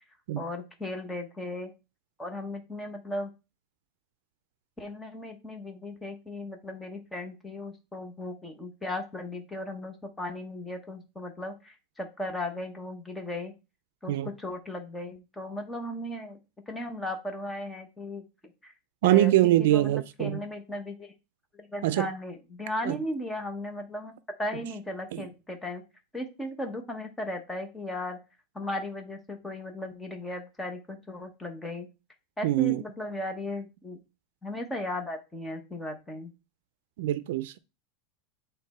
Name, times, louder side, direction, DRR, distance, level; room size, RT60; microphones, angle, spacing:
voice 1, 0.4-1.7 2.2-3.3 4.8-13.5 14.0-16.4 16.7-18.2 18.6-18.7 19.0-19.3 19.6-21.1 21.5-25.8 26.1-28.2 28.5-31.9 32.4-34.0 34.4-36.3, left 1 dB, 5° left, 1.0 m, -36 dB
voice 2, 19.0-20.4 21.8-22.1 22.8-23.0 25.1-25.3 32.4-32.8 37.0-37.6, right 15 dB, 70° right, 0.4 m, -24 dB
8.5 x 3.4 x 4.2 m
supercardioid pair, 170°, 0 cm